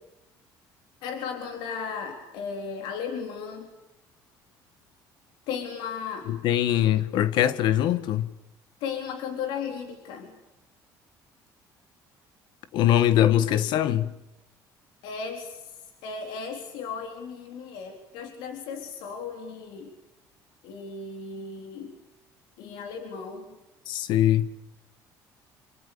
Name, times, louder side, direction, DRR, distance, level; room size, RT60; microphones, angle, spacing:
voice 1, 1.0-3.7 5.5-6.3 8.8-10.3 15.0-15.6 16.0-19.9 20.6-21.9 22.6-23.5, left 6 dB, 90° left, 4.1 m, -35 dB
voice 2, 6.3-8.3 12.7-14.1 23.9-24.5, left 12 dB, 75° left, 1.6 m, -22 dB
27.5 x 26.5 x 7.0 m
cardioid pair, 115°, 8 cm